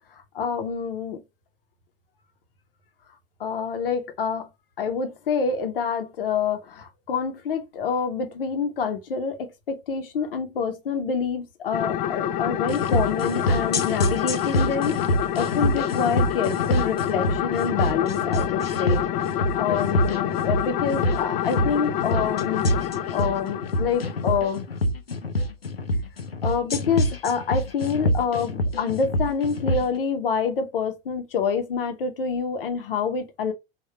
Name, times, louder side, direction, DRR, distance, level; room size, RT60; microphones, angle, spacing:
voice 1, 0.3-1.2 3.4-4.5 4.8-15.0 15.4-19.1 19.5-22.6 23.1-24.6 26.4-33.5, left 6 dB, 70° left, 0.9 m, -27 dB
sound 1, 11.7-24.5, left 10 dB, 35° left, 0.4 m, -27 dB
sound 2, 12.7-29.9, left 1 dB, 90° left, 0.5 m, -26 dB
3.7 x 2.5 x 4.4 m
figure-of-eight pair, 70°, 29 cm